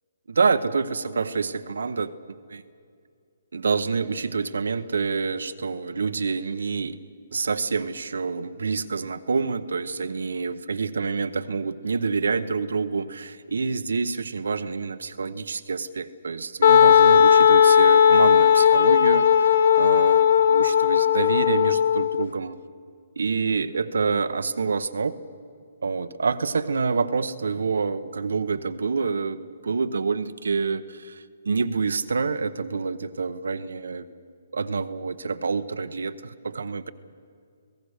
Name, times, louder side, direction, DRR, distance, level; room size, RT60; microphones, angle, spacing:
voice 1, 0.3-2.1 2.5-2.6 3.5-7.0 7.3-22.6 23.2-25.2 25.8-34.1 34.5-36.9, right 4 dB, 85° right, 11 dB, 1.0 m, -27 dB
Wind instrument woodwind instrument, 16.6-22.2, left 8 dB, 65° left, 0.8 m, -16 dB
27.5 x 17.5 x 6.6 m, 2.2 s
hypercardioid pair, 155°, 0 cm